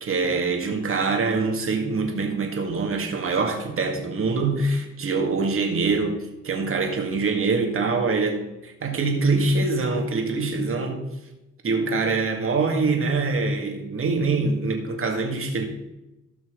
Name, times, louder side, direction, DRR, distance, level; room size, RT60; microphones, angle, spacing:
voice 1, 0.0-11.0 11.6-15.6, right 3 dB, 45° right, 2.1 m, -24 dB
16.0 x 6.1 x 3.9 m
cardioid pair, 90°, 30 cm